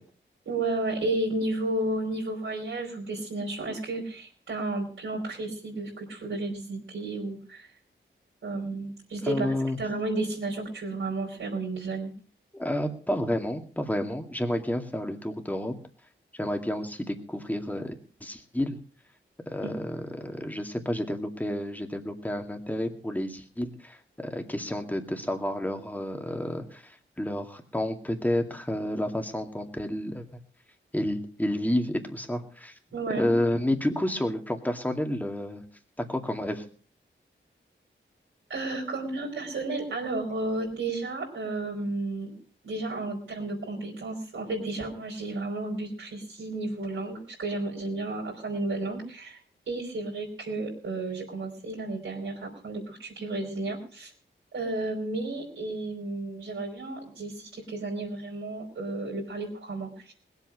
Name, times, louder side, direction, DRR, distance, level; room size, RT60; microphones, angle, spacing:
voice 1, 0.4-7.7 8.4-12.1 19.6-19.8 32.9-33.3 38.5-42.3 42.6-49.4 49.7-54.1 54.5-60.1, right 2 dB, 80° right, -3 dB, 4.9 m, -32 dB
voice 2, 9.2-9.8 12.5-15.7 16.3-18.8 19.5-30.3 30.9-32.7 33.2-35.6 36.0-36.6, left 1 dB, 10° left, 4 dB, 2.2 m, -30 dB
20.5 x 8.2 x 6.2 m, 0.42 s
wide cardioid pair, 90°, 20 cm